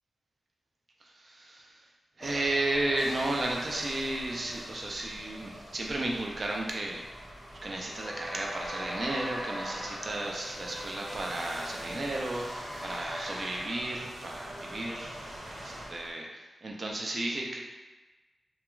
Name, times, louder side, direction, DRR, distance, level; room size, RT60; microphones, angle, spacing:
voice 1, 1.0-1.8 2.2-7.1 7.5-15.1 15.4-17.6, right 2 dB, 40° right, -1 dB, 0.4 m, -34 dB
sound 1, 2.2-16.1, equal, 5° left, 0.9 m, -43 dB
sound 2, 3.0-15.9, right 1 dB, 80° right, 0.6 m, -47 dB
Wind instrument woodwind instrument, 8.0-11.4, equal, 35° left, 0.6 m, -46 dB
2.3 x 2.3 x 3.0 m, 1.2 s
wide cardioid pair, 155°, 0 cm